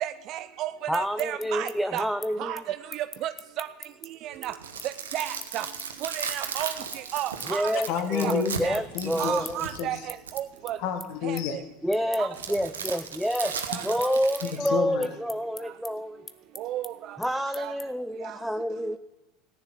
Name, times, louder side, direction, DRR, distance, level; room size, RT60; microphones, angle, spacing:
voice 1, 0.0-2.0 2.4-2.6 3.2-3.3 3.6-3.7 4.4-4.5 5.1-5.3 5.5-5.6 6.0-6.7 7.1-7.6 8.2-8.3 8.6-8.8 9.2-10.0 10.4-10.8 12.2-12.3 16.6-16.8, right 13 dB, 50° right, 0.5 m, -31 dB
sound 1, 0.7-7.5 7.8-8.4 8.7-18.1, left 5 dB, 25° left, 0.9 m, -43 dB
voice 2, 0.9-2.6 7.5-9.7 11.8-13.6 13.8-16.2 17.2-19.0, equal, ahead, 0.5 m, -28 dB
sound 2, 4.3-10.6 12.3-14.6, right 7 dB, 85° right, 1.2 m, -36 dB
voice 3, 7.9-10.0 10.8-11.6 14.4-15.1, left 8 dB, 60° left, 1.4 m, -30 dB
14.5 x 10.0 x 5.7 m
hypercardioid pair, 80°, 0 cm